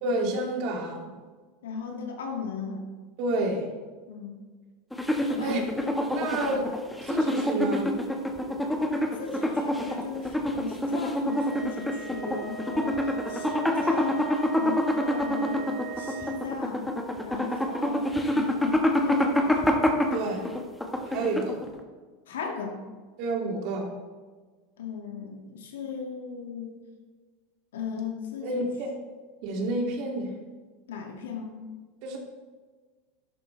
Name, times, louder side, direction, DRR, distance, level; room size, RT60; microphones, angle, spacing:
voice 1, 0.0-1.1 3.2-3.7 5.4-5.6 6.1-6.7 7.0-7.9 20.1-20.5 21.1-21.6 23.2-23.9 28.4-28.9 29.4-30.3 32.0-32.2, right 2 dB, 55° right, 0 dB, 2.7 m, -29 dB
voice 2, 1.6-2.8 4.1-4.4 5.3-5.5 9.2-14.2 14.6-16.9 17.2-18.0 18.3-19.7 22.3-22.8 24.8-26.8 27.7-28.7 30.9-31.5, left 6 dB, 75° left, 1 dB, 2.2 m, -37 dB
sound 1, 4.9-21.8, left 1 dB, 5° left, 1.5 m, -27 dB
sound 2, 11.3-16.4, right 9 dB, 20° right, 2.7 m, -40 dB
12.0 x 11.0 x 3.4 m, 1.4 s
hypercardioid pair, 90°, 0 cm